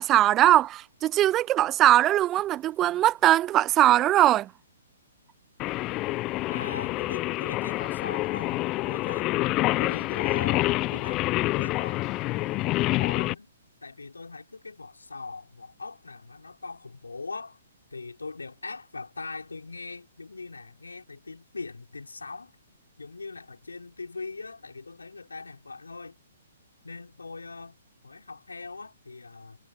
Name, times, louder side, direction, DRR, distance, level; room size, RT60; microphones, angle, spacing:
voice 1, 0.0-4.5, right 13 dB, 20° right, 0.5 m, -21 dB
Singing, 5.6-13.3, left 19 dB, 25° left, 0.9 m, -27 dB
voice 2, 6.5-9.3 9.8-13.5 13.8-17.6 17.9-22.5 23.0-26.2 26.8-27.8 28.0-29.6, left 3 dB, 80° left, 5.9 m, -41 dB
figure-of-eight pair, 125°, 0 cm